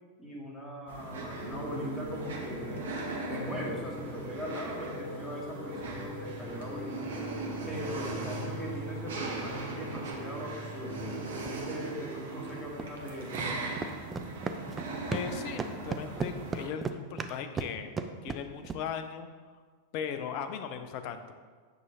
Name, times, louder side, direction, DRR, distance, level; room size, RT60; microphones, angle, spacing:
voice 1, 0.2-2.8 3.3-6.9 7.7-11.1 11.5-13.6, equal, 5° left, -5 dB, 1.8 m, -40 dB
sound 1, 0.9-16.7, right 2 dB, 60° right, 1.1 m, -40 dB
sound 2, 1.4-12.6, equal, 25° left, 1.5 m, -42 dB
sound 3, 10.0-10.1 11.5-11.6 12.8-12.9 13.3-13.5 13.8-15.3 15.6-18.8, right 4 dB, 20° right, 0.4 m, -35 dB
voice 2, 15.1-18.0 18.2-19.3 19.9-21.3, left 7 dB, 45° left, 8 dB, 0.6 m, -38 dB
8.0 x 6.2 x 2.8 m, 1.5 s
figure-of-eight pair, 90°, 0 cm